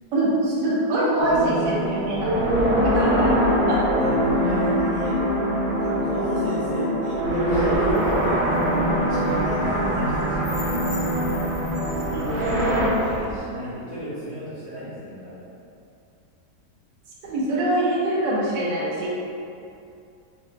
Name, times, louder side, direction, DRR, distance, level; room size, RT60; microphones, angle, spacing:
voice 1, 0.1-2.5 2.9-3.8 12.1-12.2 17.2-19.2, right 1 dB, 85° right, -6 dB, 1.4 m, -24 dB
sound 1, 1.2-12.9, equal, 65° right, 1.3 m, -23 dB
voice 2, 2.9-5.2 5.8-8.4 9.0-11.3 11.9-15.5, equal, 50° left, -11 dB, 0.9 m, -34 dB
sound 2, 7.8-13.4, left 1 dB, 80° left, 1.3 m, -36 dB
4.4 x 2.5 x 2.2 m, 2.6 s
omnidirectional pair, 1.9 m